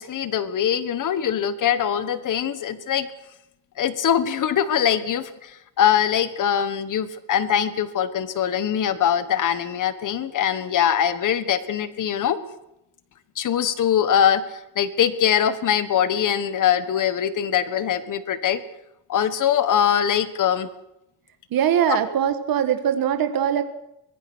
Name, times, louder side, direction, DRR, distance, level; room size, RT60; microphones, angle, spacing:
voice 1, 0.0-3.1 3.8-5.5 5.8-12.4 13.4-14.4 14.7-18.6 19.1-20.7 21.9-22.0, left 9 dB, 50° left, 13 dB, 1.6 m, -22 dB
voice 2, 21.5-23.6, right 9 dB, 60° right, 9 dB, 1.7 m, -21 dB
24.0 x 21.5 x 6.3 m, 0.85 s
cardioid pair, 175°, 40 cm